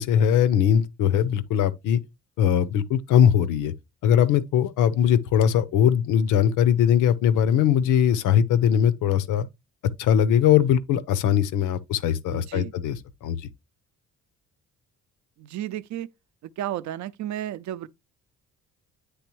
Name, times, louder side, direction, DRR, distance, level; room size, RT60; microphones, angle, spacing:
voice 1, 0.0-2.0 2.4-3.7 4.0-9.5 10.0-13.4, left 9 dB, 85° left, 0.7 m, -21 dB
voice 2, 12.3-12.7 15.4-16.1 16.4-17.9, right 12 dB, 70° right, 0.5 m, -33 dB
9.5 x 3.3 x 3.1 m
cardioid pair, 90°, 30 cm